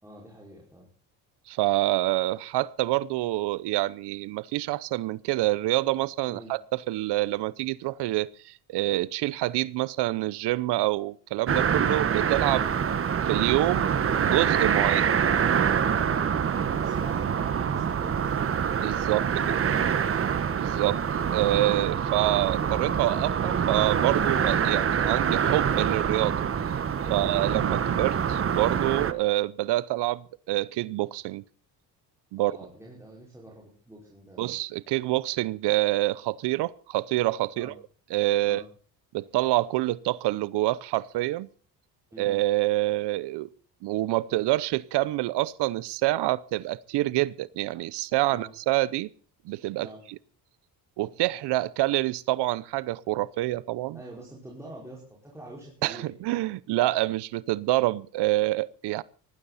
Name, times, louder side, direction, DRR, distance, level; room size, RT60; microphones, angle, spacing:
voice 1, 0.0-0.9 6.3-6.5 12.5-12.8 15.9-21.0 32.4-34.5 37.6-37.7 38.4-38.7 42.1-42.3 48.3-48.5 49.8-50.0 53.9-56.2, right 1 dB, 5° right, 5.3 m, -46 dB
voice 2, 1.5-12.7 13.2-15.1 18.8-19.6 20.6-21.0 21.3-26.4 27.1-31.4 32.3-32.5 34.4-37.7 38.1-38.6 39.1-41.5 42.2-43.5 43.8-49.1 49.4-50.2 51.0-54.0 55.8-59.0, right 17 dB, 80° right, 0.8 m, -27 dB
sound 1, 11.5-29.1, right 7 dB, 35° right, 1.3 m, -25 dB
19.0 x 15.5 x 4.2 m
cardioid pair, 140°, 40 cm